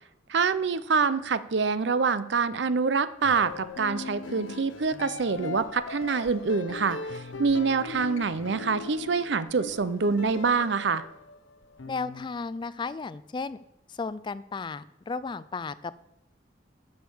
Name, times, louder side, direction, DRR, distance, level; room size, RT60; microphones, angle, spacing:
voice 1, 0.3-11.0, right 5 dB, 65° right, 14 dB, 0.6 m, -26 dB
sound 1, 3.2-12.3, left 4 dB, 90° left, 0.8 m, -40 dB
voice 2, 11.9-13.6 13.9-16.0, left 4 dB, 25° left, 16 dB, 0.3 m, -34 dB
10.0 x 6.5 x 7.0 m, 0.84 s
head